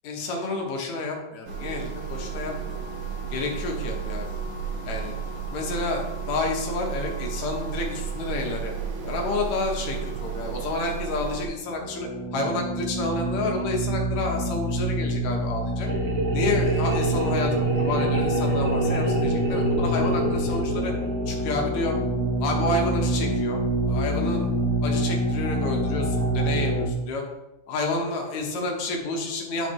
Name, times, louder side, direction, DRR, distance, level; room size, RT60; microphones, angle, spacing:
voice 1, 0.0-2.8 3.3-4.3 4.8-5.1 5.5-8.7 9.0-15.9 16.3-20.9 21.3-21.9 22.4-24.5 24.8-27.2 27.7-29.7, left 3 dB, 65° left, 1 dB, 2.4 m, -29 dB
sound 1, 1.5-11.5, right 7 dB, 60° right, 1.6 m, -33 dB
sound 2, 11.6-26.9, right 1 dB, 15° left, 1.3 m, -26 dB
sound 3, 15.9-21.6, right 3 dB, 75° right, 1.1 m, -29 dB
10.5 x 3.7 x 4.6 m, 1.0 s
omnidirectional pair, 3.5 m